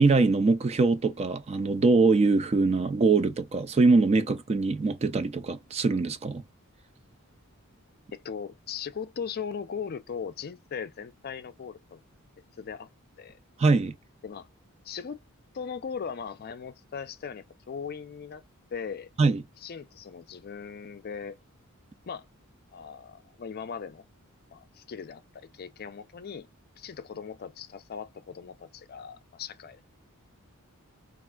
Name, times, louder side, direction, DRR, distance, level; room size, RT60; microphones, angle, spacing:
voice 1, 0.0-6.4 13.6-13.9 19.2-19.4, right 3 dB, 30° right, 0.3 m, -23 dB
voice 2, 8.1-12.0 12.6-12.9 13.2-13.4 14.2-14.5 14.8-15.2 15.5-18.4 18.7-19.1 19.6-21.4 22.1-22.3 22.7-24.1 24.5-26.5 26.8-29.8, left 6 dB, 45° left, 0.4 m, -39 dB
3.5 x 2.4 x 2.2 m
head